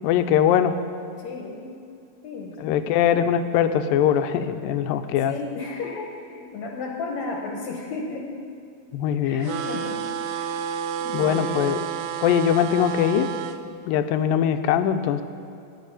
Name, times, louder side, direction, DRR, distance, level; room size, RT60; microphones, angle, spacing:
voice 1, 0.0-0.8 2.6-5.3 8.9-9.5 11.1-11.8 12.2-13.3 13.9-15.2, left 9 dB, 80° left, 10 dB, 2.2 m, -21 dB
voice 2, 1.2-1.7 2.2-3.1 5.2-8.4 9.2-10.6 11.0-11.7, left 3 dB, 65° left, 0 dB, 2.0 m, -34 dB
sound 1, 9.4-13.6, right 9 dB, 85° right, 2.3 m, -30 dB
11.0 x 7.3 x 9.9 m, 2.5 s
omnidirectional pair, 4.2 m